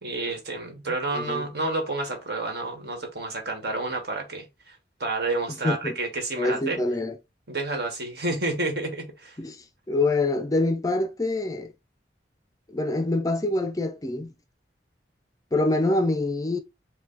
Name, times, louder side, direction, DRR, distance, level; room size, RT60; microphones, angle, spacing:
voice 1, 0.0-6.8 7.5-9.4, right 2 dB, 65° right, 1.5 m, -30 dB
voice 2, 5.6-6.0 6.4-7.1 9.4-9.6 9.9-11.7 12.7-14.3 15.5-16.6, left 2 dB, 20° left, 0.4 m, -25 dB
5.0 x 2.2 x 3.8 m
head